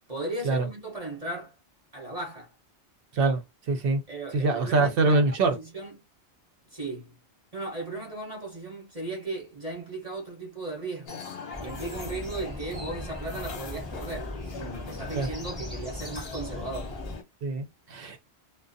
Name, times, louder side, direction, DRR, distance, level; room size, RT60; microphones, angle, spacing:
voice 1, 0.1-1.5 1.9-2.5 4.1-6.0 6.7-7.2 7.5-11.2 11.6-16.9, right 2 dB, 35° right, 0.9 m, -36 dB
voice 2, 3.7-4.0 4.3-5.6 15.1-15.3 17.4-18.2, right 3 dB, 65° right, 0.7 m, -24 dB
sound 1, 11.1-17.2, left 5 dB, 65° left, 1.0 m, -41 dB
sound 2, 11.5-17.2, left 1 dB, ahead, 0.6 m, -39 dB
2.4 x 2.2 x 2.5 m
omnidirectional pair, 1.2 m